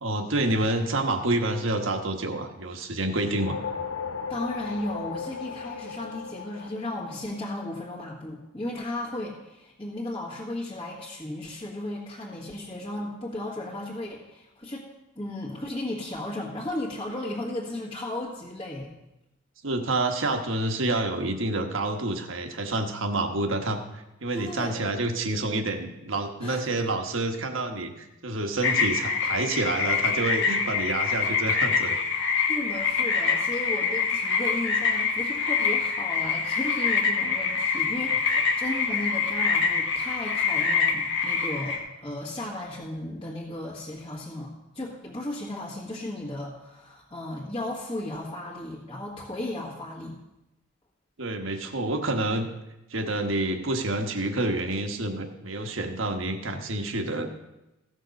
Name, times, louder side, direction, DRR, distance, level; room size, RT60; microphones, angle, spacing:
voice 1, 0.0-3.6 19.6-32.0 51.2-52.5 52.9-57.3, right 2 dB, 70° right, 5 dB, 1.2 m, -28 dB
sound 1, 3.1-7.7, left 6 dB, 85° left, 0.6 m, -36 dB
voice 2, 4.3-14.9 15.2-18.9 24.3-24.8 26.4-26.6 32.5-50.2, left 1 dB, 25° left, -5 dB, 1.6 m, -35 dB
sound 2, 28.6-41.8, left 5 dB, 65° left, 1.3 m, -25 dB
15.5 x 6.5 x 5.3 m, 0.95 s
head